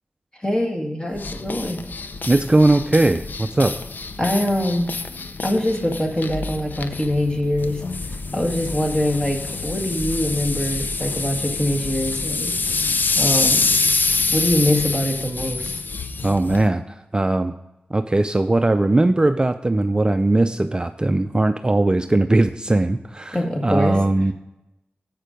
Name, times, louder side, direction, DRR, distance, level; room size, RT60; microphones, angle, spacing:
voice 1, 0.3-1.8 4.2-4.9 5.4-7.8 8.3-12.5 13.2-13.7 14.3-15.7 23.3-24.0, left 1 dB, 20° left, 3 dB, 1.8 m, -23 dB
sound 1, 1.1-16.7, left 4 dB, 55° left, 0.5 m, -26 dB
voice 2, 2.3-3.8 16.2-17.5 17.9-23.4 23.6-24.3, right 2 dB, 25° right, 9 dB, 0.4 m, -19 dB
8.1 x 6.5 x 5.1 m, 0.94 s
wide cardioid pair, 65°, 4 cm